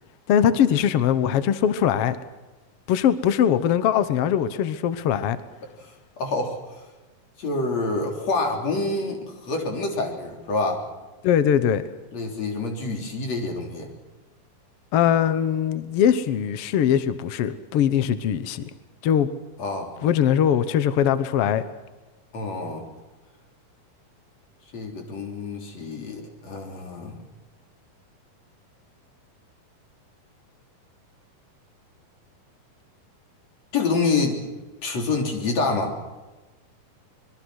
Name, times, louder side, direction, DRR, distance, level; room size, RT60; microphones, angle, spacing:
voice 1, 0.3-2.2 2.9-5.4 11.2-11.8 14.9-18.6 19.0-19.3 20.0-21.7, left 9 dB, 80° left, 12 dB, 1.3 m, -21 dB
voice 2, 6.2-6.6 7.4-10.9 12.1-13.9 19.6-19.9 22.3-22.8 24.7-27.1 33.7-34.4 34.8-36.0, left 3 dB, 45° left, 2 dB, 4.6 m, -27 dB
25.0 x 22.5 x 6.4 m, 1.2 s
omnidirectional pair, 4.2 m